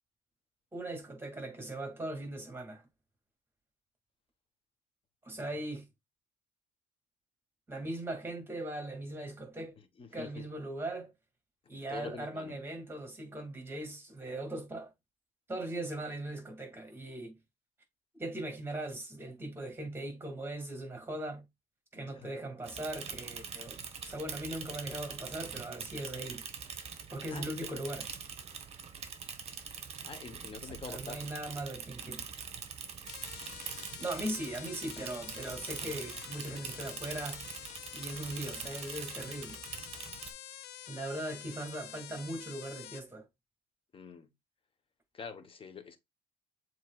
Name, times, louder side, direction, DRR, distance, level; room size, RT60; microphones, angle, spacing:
voice 1, 0.7-2.8 5.2-5.8 7.7-9.7 10.1-11.1 11.7-14.9 15.5-17.4 18.2-21.4 21.9-26.4 27.1-28.1 30.6-32.2 34.0-37.4 37.9-39.6 40.9-43.3, right 1 dB, 15° right, 2.0 m, -39 dB
voice 2, 10.0-10.5 11.7-12.6 22.1-22.3 27.3-27.9 30.0-31.2 43.9-44.3 45.1-46.0, left 5 dB, 30° left, 1.0 m, -45 dB
Bicycle / Mechanisms, 22.6-40.3, right 6 dB, 40° right, 1.0 m, -43 dB
sound 1, 33.1-43.0, left 12 dB, 75° left, 0.5 m, -48 dB
7.3 x 3.1 x 2.3 m
cardioid pair, 110°, 17 cm